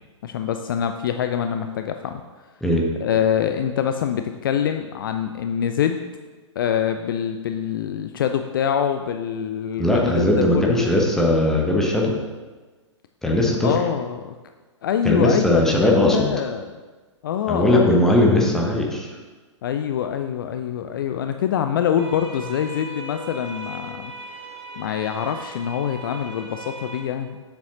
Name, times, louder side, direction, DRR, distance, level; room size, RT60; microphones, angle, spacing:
voice 1, 0.2-2.2 3.0-6.0 6.6-10.9 13.6-14.4 14.8-16.7 17.2-18.2 19.6-24.1 24.8-27.4, left 9 dB, 45° left, 7 dB, 0.4 m, -25 dB
voice 2, 9.8-12.1 13.2-13.8 15.0-16.3 17.5-19.1, left 1 dB, 5° left, -1 dB, 1.0 m, -19 dB
sound 1, 22.0-27.0, right 2 dB, 55° right, 1.4 m, -38 dB
7.3 x 7.0 x 3.0 m, 1.3 s
figure-of-eight pair, 110°, 16 cm